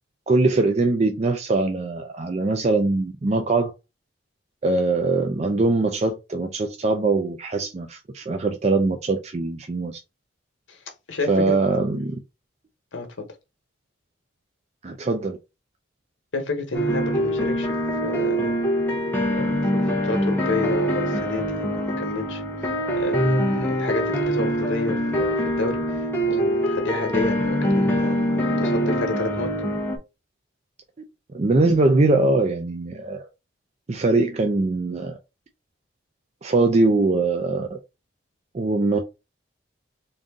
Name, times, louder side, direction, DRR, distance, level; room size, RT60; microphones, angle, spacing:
voice 1, 0.3-3.7 4.6-10.0 11.3-12.2 14.8-15.4 31.3-33.3 33.9-35.2 36.4-37.8 38.5-39.0, right 3 dB, 35° right, 0.4 m, -22 dB
voice 2, 11.1-11.6 12.9-13.3 16.3-17.7 18.0-18.6 19.3-22.7 23.0-29.5, left 3 dB, 85° left, 1.1 m, -30 dB
sound 1, 16.7-30.0, equal, 10° left, 0.7 m, -24 dB
3.7 x 2.6 x 3.6 m
head